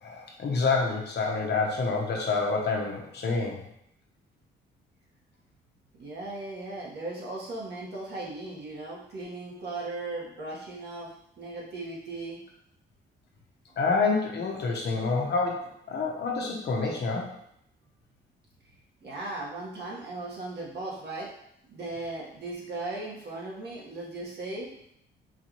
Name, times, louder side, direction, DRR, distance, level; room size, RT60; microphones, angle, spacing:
voice 1, 0.0-3.6 13.8-17.3, left 4 dB, 55° left, -1 dB, 1.0 m, -28 dB
voice 2, 6.0-11.1 11.4-12.4 19.0-21.3 21.7-24.7, right 2 dB, 55° right, -5 dB, 1.6 m, -37 dB
4.8 x 2.7 x 3.1 m, 0.74 s
cardioid pair, 90°, 20 cm